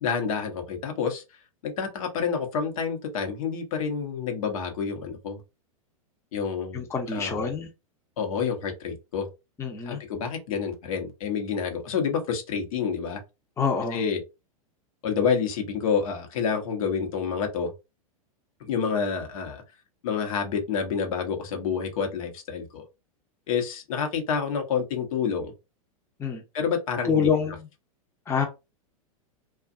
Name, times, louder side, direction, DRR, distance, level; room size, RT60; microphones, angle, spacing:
voice 1, 0.0-1.2 1.6-5.4 6.3-7.5 8.2-9.3 9.8-13.2 13.9-14.2 15.0-17.7 18.6-19.6 20.0-22.8 23.5-25.5 26.5-27.3, left 6 dB, 70° left, 1.0 m, -28 dB
voice 2, 6.7-7.7 9.6-10.0 13.6-14.0 26.2-26.4 27.0-27.7 28.3-28.4, left 6 dB, 15° left, 0.6 m, -26 dB
2.5 x 2.3 x 2.5 m
hypercardioid pair, 110°, 19 cm